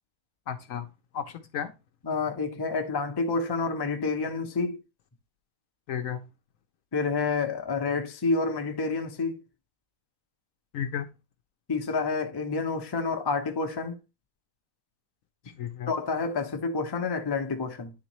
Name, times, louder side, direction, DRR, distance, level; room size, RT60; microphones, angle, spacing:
voice 1, 0.5-0.9 1.1-1.7 5.9-6.2 10.7-11.1 15.6-15.9, left 8 dB, 70° left, 0.9 m, -33 dB
voice 2, 2.0-4.8 6.9-9.4 11.7-14.0 15.9-17.9, left 4 dB, 30° left, 0.4 m, -29 dB
9.7 x 3.7 x 3.0 m
omnidirectional pair, 1.7 m